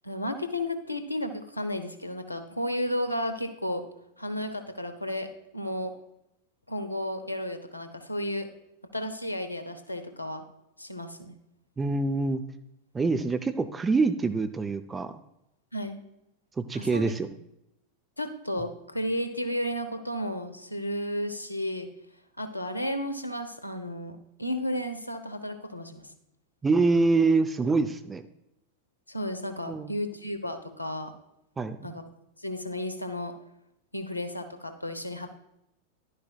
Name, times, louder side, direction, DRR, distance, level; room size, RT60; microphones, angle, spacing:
voice 1, 0.0-3.8 4.2-5.3 5.5-5.9 6.7-8.5 8.9-10.4 10.8-11.4 15.7-16.0 16.7-17.0 18.2-21.9 22.4-26.1 29.1-31.1 31.8-32.1 32.4-33.3 33.9-35.3, left 1 dB, 85° left, 9 dB, 0.9 m, -33 dB
voice 2, 11.8-12.4 12.9-15.2 16.6-17.3 26.6-28.2 29.7-29.9 31.6-31.9, right 3 dB, 15° right, 9 dB, 0.5 m, -25 dB
11.0 x 9.8 x 2.4 m, 0.82 s
figure-of-eight pair, 90°, 0 cm